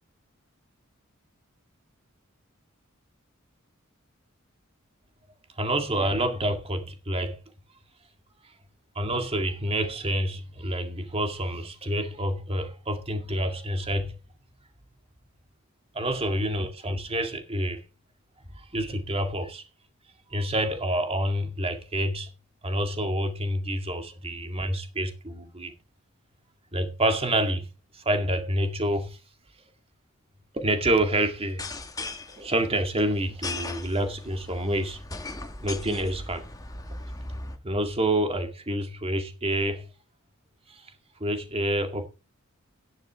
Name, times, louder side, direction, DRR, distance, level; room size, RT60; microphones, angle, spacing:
voice 1, 5.6-7.4 8.4-8.5 9.0-14.2 15.9-17.8 18.5-19.6 20.3-22.3 22.6-25.7 26.7-27.7 27.9-29.2 30.5-31.7 32.3-35.0 35.6-36.4 37.6-39.9 40.7-40.9 41.2-42.1, right 1 dB, 30° right, 2.0 m, -28 dB
sound 1, 31.4-37.6, left 2 dB, 20° left, 1.6 m, -38 dB
13.5 x 10.5 x 3.5 m
head